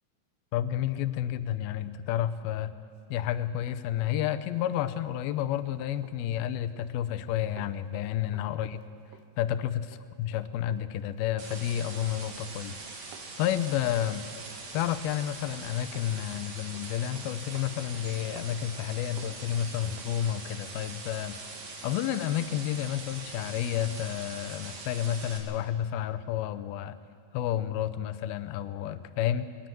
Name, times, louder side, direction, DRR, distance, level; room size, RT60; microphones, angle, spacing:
voice 1, 0.5-2.7 3.1-8.8 9.4-9.9 10.2-14.2 14.7-21.4 21.8-27.0 27.3-29.5, left 11 dB, 80° left, 11 dB, 2.5 m, -30 dB
Run, 3.1-20.2 20.5-20.7, right 9 dB, 80° right, 2.9 m, -55 dB
sound 1, 11.4-25.4, right 3 dB, 50° right, 3.2 m, -43 dB
21.0 x 19.5 x 7.6 m, 2.2 s
omnidirectional pair, 4.5 m